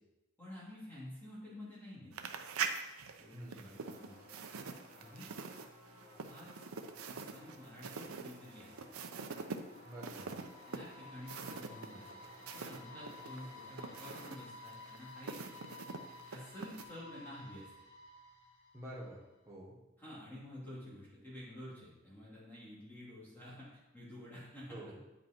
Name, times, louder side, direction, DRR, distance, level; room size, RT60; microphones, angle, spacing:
voice 1, 0.4-2.4 3.2-4.3 5.0-5.3 6.2-6.6 7.1-8.8 10.7-12.2 12.5-15.4 16.3-17.7 20.0-24.8, left 1 dB, 10° left, -9 dB, 2.6 m, -50 dB
sound 1, 2.1-12.8 13.1-16.8, right 5 dB, 85° right, 0.7 m, -44 dB
voice 2, 3.3-3.8 9.8-10.4 18.7-19.8 24.7-25.0, right 1 dB, 15° right, -6 dB, 1.4 m, -48 dB
sound 2, 3.8-14.4, left 1 dB, 30° left, 2.0 m, -59 dB
sound 3, 9.1-19.2, left 2 dB, 80° left, 1.8 m, -54 dB
9.3 x 5.3 x 4.4 m, 0.97 s
head